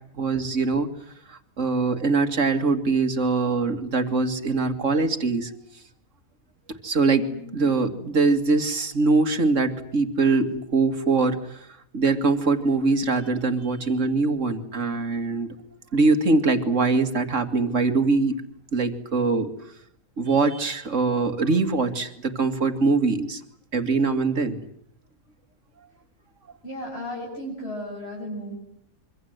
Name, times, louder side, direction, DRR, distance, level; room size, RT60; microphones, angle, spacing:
voice 1, 0.2-0.9 1.3-5.5 6.7-7.3 7.5-11.6 11.9-15.5 15.9-18.3 18.7-19.5 20.2-23.4 23.7-24.6, right 3 dB, 55° right, 9 dB, 2.5 m, -23 dB
voice 2, 26.6-28.5, equal, 45° left, -4 dB, 8.4 m, -34 dB
26.5 x 24.5 x 8.0 m, 0.70 s
omnidirectional pair, 1.5 m